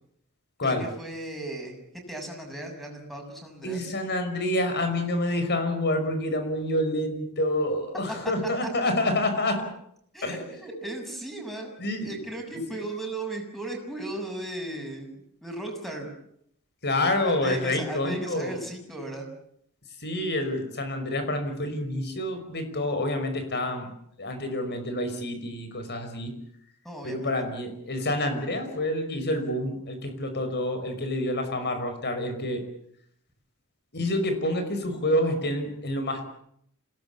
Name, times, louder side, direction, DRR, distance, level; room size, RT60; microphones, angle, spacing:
voice 1, 0.6-1.8 2.1-3.8 8.6-8.7 10.1-11.7 12.0-16.1 17.2-19.2 26.8-27.3, right 1 dB, ahead, 3 dB, 6.9 m, -36 dB
voice 2, 3.6-9.7 10.2-10.4 11.8-12.2 16.8-18.5 20.0-23.9 24.2-26.3 27.0-32.6 33.9-36.3, left 1 dB, 50° left, 8 dB, 5.6 m, -28 dB
27.0 x 18.5 x 8.5 m, 0.71 s
head